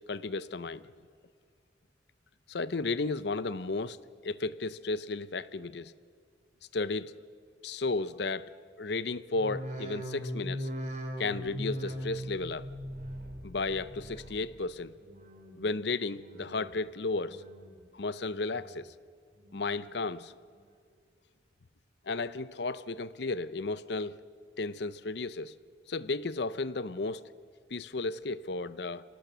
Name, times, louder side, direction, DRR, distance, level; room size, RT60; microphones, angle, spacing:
voice 1, 0.1-0.8 2.5-4.0 4.2-5.9 6.7-7.1 7.6-8.5 8.8-10.7 11.2-12.7 13.4-14.9 15.6-17.4 17.9-18.9 19.5-20.3 22.1-24.2 24.6-25.5 25.9-27.2 27.7-29.0, left 3 dB, 60° left, 16 dB, 0.6 m, -33 dB
sound 1, 9.3-14.7 15.0-15.6 16.1-16.7 17.2-17.8 18.2-18.9 19.4-19.9 20.5-20.6, equal, 40° right, 2.8 m, -40 dB
24.5 x 18.5 x 6.9 m, 2.1 s
head